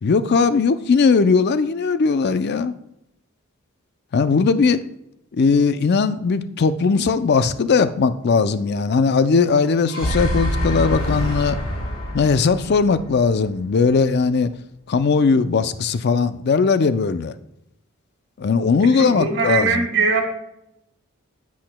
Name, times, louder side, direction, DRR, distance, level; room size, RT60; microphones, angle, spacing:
voice 1, 0.0-2.7 4.1-4.8 5.3-11.6 12.1-14.5 14.9-17.3 18.4-19.8, left 5 dB, 50° left, 13 dB, 0.4 m, -19 dB
sound 1, 9.6-13.8, equal, 75° left, 2.2 m, -26 dB
voice 2, 18.9-20.2, right 4 dB, 55° right, 3 dB, 1.5 m, -20 dB
9.9 x 8.5 x 2.2 m, 0.84 s
head